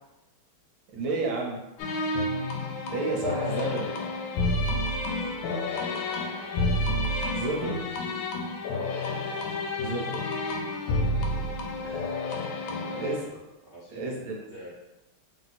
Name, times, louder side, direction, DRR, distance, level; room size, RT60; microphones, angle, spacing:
voice 1, 0.9-1.6 2.9-3.9 7.3-7.8 9.8-10.2 11.8-12.0 12.9-13.2 13.9-14.4, right 3 dB, 75° right, 0 dB, 1.5 m, -31 dB
sound 1, 1.8-13.3, left 2 dB, 75° left, 1.3 m, -30 dB
voice 2, 5.2-5.6 8.7-9.0 9.9-10.0 11.1-11.5 11.8-12.1 12.6-14.2 14.5-14.7, right 1 dB, 60° right, -10 dB, 0.6 m, -46 dB
3.3 x 2.8 x 4.0 m, 0.98 s
omnidirectional pair, 2.3 m